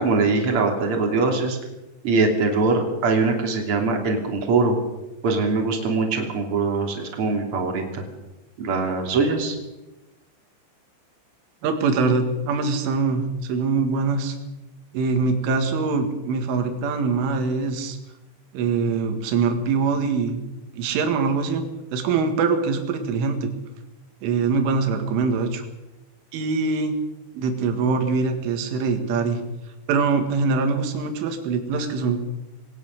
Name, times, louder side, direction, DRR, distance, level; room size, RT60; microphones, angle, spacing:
voice 1, 0.0-1.6 2.0-4.7 5.2-8.0 8.6-9.6, right 3 dB, 35° right, 2 dB, 3.2 m, -22 dB
voice 2, 11.6-14.4 14.9-18.0 18.5-20.4 20.7-21.6 21.9-23.5 24.2-25.6 26.3-27.0 27.3-29.4 29.9-32.2, right 4 dB, 85° right, 6 dB, 4.5 m, -23 dB
21.0 x 19.0 x 6.7 m, 1.0 s
omnidirectional pair, 5.5 m